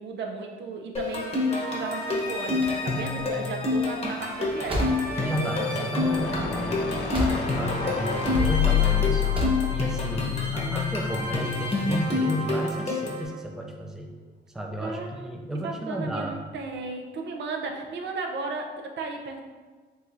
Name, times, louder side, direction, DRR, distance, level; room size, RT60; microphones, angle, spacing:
voice 1, 0.0-6.4 14.8-19.4, right 4 dB, 65° right, 2 dB, 0.6 m, -35 dB
sound 1, 1.0-13.3, left 3 dB, 30° left, 1.0 m, -28 dB
sound 2, 2.4-7.8 8.0-8.8 9.1-9.7, equal, 25° right, 1.0 m, -33 dB
voice 2, 5.3-9.4 9.7-14.1 14.5-16.4, equal, 5° right, 1 dB, 0.5 m, -32 dB
sound 3, 6.0-11.3, left 9 dB, 80° left, 0.6 m, -28 dB
4.7 x 3.1 x 2.6 m, 1.4 s
cardioid pair, 90°, 20 cm